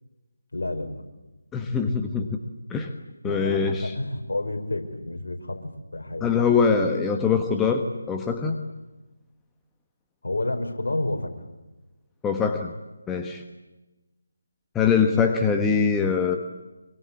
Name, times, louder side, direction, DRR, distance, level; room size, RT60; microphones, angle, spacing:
voice 1, 0.5-1.0 3.2-3.6 3.8-6.3 10.2-11.3, left 2 dB, 60° left, 4 dB, 5.3 m, -30 dB
voice 2, 1.5-2.3 2.7-2.9 3.2-3.9 6.2-8.5 12.2-12.7 13.1-13.4 14.7-16.4, left 5 dB, 10° left, 4 dB, 1.4 m, -23 dB
25.5 x 24.0 x 8.6 m, 1.1 s
figure-of-eight pair, 155°, 0 cm